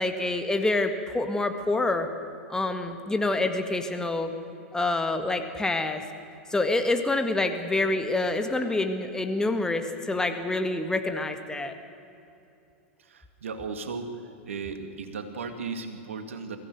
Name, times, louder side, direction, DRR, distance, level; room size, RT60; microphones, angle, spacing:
voice 1, 0.0-2.1 2.5-4.3 4.7-6.0 6.5-11.7, left 2 dB, 10° left, 6 dB, 1.8 m, -27 dB
voice 2, 13.1-14.2 14.4-16.6, right 4 dB, 75° right, 7 dB, 2.2 m, -36 dB
23.0 x 15.5 x 9.4 m, 2.7 s
figure-of-eight pair, 95°, 7 cm